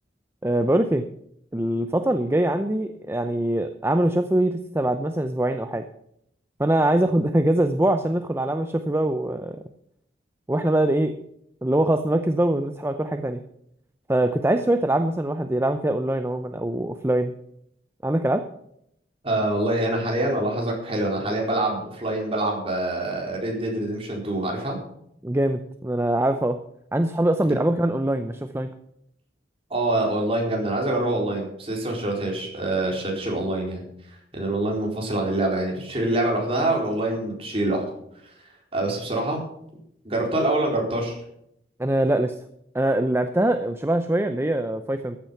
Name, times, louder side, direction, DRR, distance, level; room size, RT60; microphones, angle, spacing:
voice 1, 0.4-1.0 1.5-5.8 6.6-9.6 10.5-11.2 11.6-13.4 14.1-17.3 18.0-18.5 25.2-26.6 26.9-28.7 41.8-42.3 42.7-45.2, right 1 dB, 15° right, 8 dB, 0.6 m, -23 dB
voice 2, 19.2-24.8 29.7-37.8 38.2-39.4 40.0-41.2, right 1 dB, 35° right, -1 dB, 4.3 m, -25 dB
14.0 x 9.2 x 5.7 m, 0.73 s
head